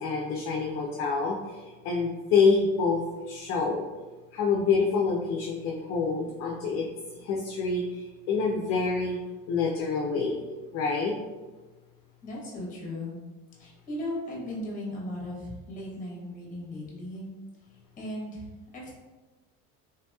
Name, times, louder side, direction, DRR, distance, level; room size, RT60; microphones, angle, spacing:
voice 1, 0.0-3.8 4.3-6.9 7.1-9.2 9.5-10.4 10.7-11.1, left 4 dB, 50° left, -2 dB, 0.4 m, -27 dB
voice 2, 12.2-13.2 13.6-17.3 17.7-18.4 18.7-18.9, left 1 dB, 25° left, -3 dB, 0.9 m, -37 dB
3.4 x 2.8 x 2.2 m, 1.2 s
cardioid pair, 155°, 31 cm